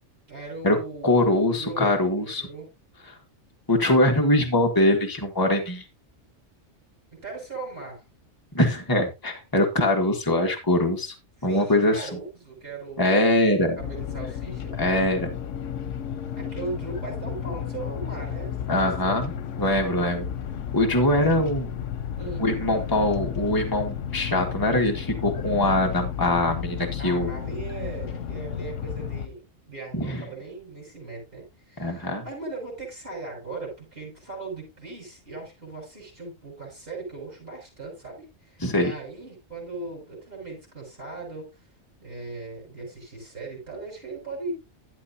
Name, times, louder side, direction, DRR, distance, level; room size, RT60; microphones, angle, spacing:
voice 1, 0.3-1.9 2.2-2.7 7.1-8.0 11.4-13.2 13.8-14.8 16.4-19.2 21.2-21.4 22.2-22.5 27.0-41.5 42.0-44.5, right 3 dB, 50° right, 7.8 m, -38 dB
voice 2, 1.0-2.5 3.7-5.8 8.5-11.1 11.4-12.1 13.0-13.8 14.8-15.4 18.7-19.3 19.6-20.3 20.7-21.7 22.4-27.3 29.9-30.2 31.8-32.2 38.6-38.9, left 1 dB, 15° left, 1.8 m, -22 dB
sound 1, 13.8-29.3, left 9 dB, 85° left, 1.1 m, -33 dB
12.5 x 8.8 x 2.8 m
omnidirectional pair, 1.2 m